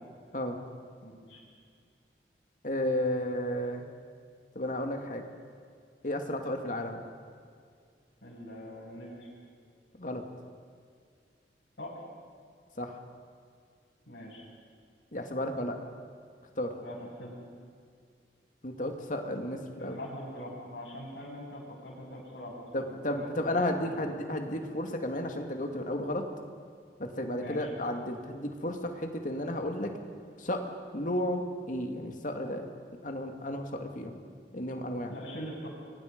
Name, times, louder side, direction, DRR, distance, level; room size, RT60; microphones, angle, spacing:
voice 1, 1.0-1.4 8.2-9.3 11.8-12.0 14.1-14.4 16.8-17.4 19.8-24.1 27.4-27.7 35.1-35.7, equal, 80° left, -9 dB, 7.4 m, -43 dB
voice 2, 2.6-3.8 4.6-5.2 6.0-7.0 10.0-10.2 12.8-13.0 15.1-15.8 16.6-16.7 18.6-20.0 22.7-26.2 27.0-29.9 30.4-30.6 30.9-31.4 31.7-32.7 33.0-34.2 34.5-35.1, left 1 dB, 45° left, 4 dB, 2.3 m, -33 dB
30.0 x 23.5 x 5.3 m, 2.2 s
head